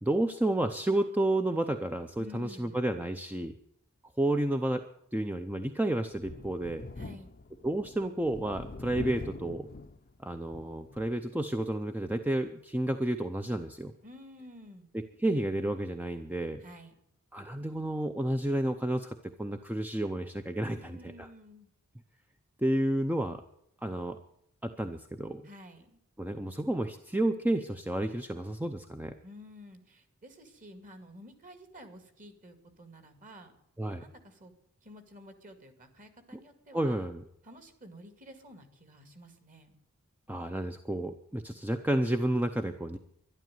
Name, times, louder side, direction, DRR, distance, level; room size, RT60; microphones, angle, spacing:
voice 1, 0.0-3.5 4.2-4.8 5.1-6.9 7.6-9.7 10.2-13.9 14.9-16.6 17.3-21.3 22.6-23.4 23.8-24.2 24.6-25.4 26.2-29.2 33.8-34.0 36.7-37.2 40.3-43.0, right 1 dB, 5° right, 7 dB, 0.6 m, -31 dB
voice 2, 2.2-2.9 7.0-7.3 14.0-14.9 16.6-17.0 20.6-21.7 25.4-26.0 29.2-33.5 34.0-34.5 34.8-37.1 37.4-39.8, equal, 35° right, 8 dB, 2.2 m, -51 dB
Thunder, 6.1-11.2 11.7-11.8 13.1-13.2, left 3 dB, 40° left, 0.6 m, -44 dB
12.0 x 11.5 x 9.3 m, 0.74 s
head